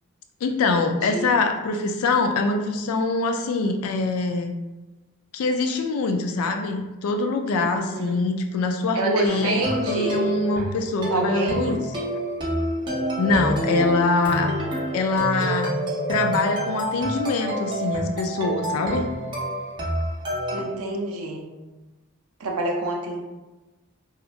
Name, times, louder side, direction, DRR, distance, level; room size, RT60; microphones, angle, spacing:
voice 1, 0.4-4.5 5.3-11.8 13.2-14.5 14.9-15.7 16.1-19.1, left 3 dB, 70° left, 5 dB, 0.3 m, -24 dB
voice 2, 8.9-10.3 10.6-10.7 11.1-11.7 20.5-21.5 22.4-23.2, right 1 dB, 70° right, 0 dB, 0.5 m, -27 dB
sound 1, 9.3-20.6, equal, 20° right, 0.5 m, -28 dB
2.8 x 2.4 x 2.4 m, 1.1 s
head